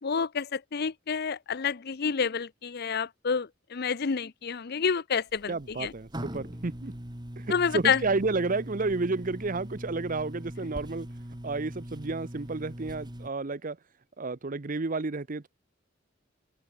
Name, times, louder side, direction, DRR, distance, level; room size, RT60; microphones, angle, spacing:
voice 1, 0.0-5.9 7.5-8.0, left 6 dB, 55° left, 0.7 m, -29 dB
sound 1, 5.3-13.3, equal, 20° right, 3.1 m, -41 dB
voice 2, 5.5-6.9 7.4-11.1 11.4-13.8 14.2-15.5, right 3 dB, 45° right, 0.8 m, -31 dB
open air
head